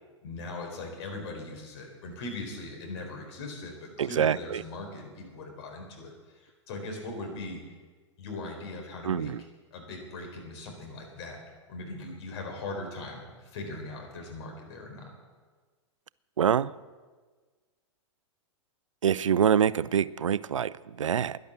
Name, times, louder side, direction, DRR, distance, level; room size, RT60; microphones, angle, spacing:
voice 1, 0.2-7.6 8.2-9.3 9.7-11.4 11.7-15.1, left 2 dB, 55° left, 4.2 m, -40 dB
voice 2, 4.0-4.6 9.0-9.4 16.4-16.7 19.0-21.4, right 8 dB, 85° right, 0.4 m, -25 dB
11.5 x 11.0 x 7.4 m
hypercardioid pair, 105°, 16 cm